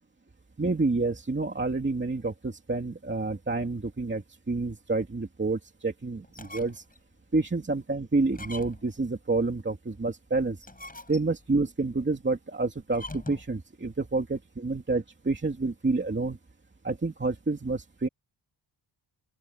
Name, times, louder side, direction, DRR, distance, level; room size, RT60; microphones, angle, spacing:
voice 1, 0.6-6.8 7.3-10.6 11.1-16.4 16.8-18.1, right 3 dB, 25° right, 2.6 m, -29 dB
sound 1, 6.2-7.0 7.4-7.5 8.3-9.0 10.5-11.5 12.9-13.6, left 2 dB, 15° left, 7.9 m, -43 dB
open air
wide cardioid pair, 175°, 48 cm